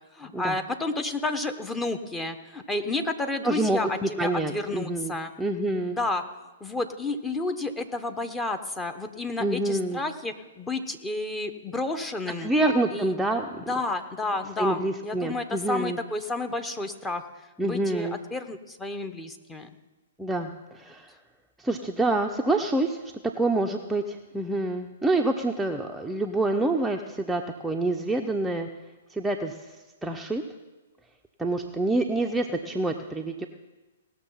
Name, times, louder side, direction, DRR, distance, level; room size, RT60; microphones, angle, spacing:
voice 1, 0.1-5.3 5.9-6.2 6.6-12.5 12.9-13.1 13.7-17.3 17.6-19.7, left 2 dB, 10° left, 7 dB, 1.0 m, -31 dB
voice 2, 3.4-6.0 9.4-10.0 12.4-13.6 14.6-16.0 17.6-18.2 20.2-21.1 21.6-23.0 23.4-28.7 29.1-29.6 30.0-30.4 31.4-33.5, right 2 dB, 5° right, 1 dB, 0.7 m, -27 dB
18.5 x 6.6 x 5.7 m, 1.2 s
figure-of-eight pair, 120°, 0 cm